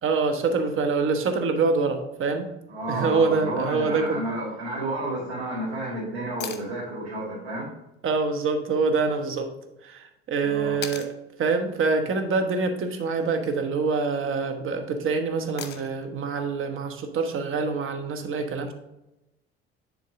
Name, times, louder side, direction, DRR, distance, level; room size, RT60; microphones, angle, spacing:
voice 1, 0.0-2.5 2.9-4.2 8.0-9.5 9.8-11.1 11.4-18.7, right 4 dB, 40° right, 6 dB, 1.2 m, -25 dB
voice 2, 2.7-7.7 10.4-10.8, right 1 dB, 75° right, -8 dB, 2.1 m, -31 dB
sound 1, 6.4-6.7 8.9-9.0 10.8-11.1 13.2-13.6 15.6-16.1 18.2-18.3, left 7 dB, 35° left, 1.0 m, -37 dB
10.5 x 3.9 x 3.6 m, 0.93 s
figure-of-eight pair, 55°, 32 cm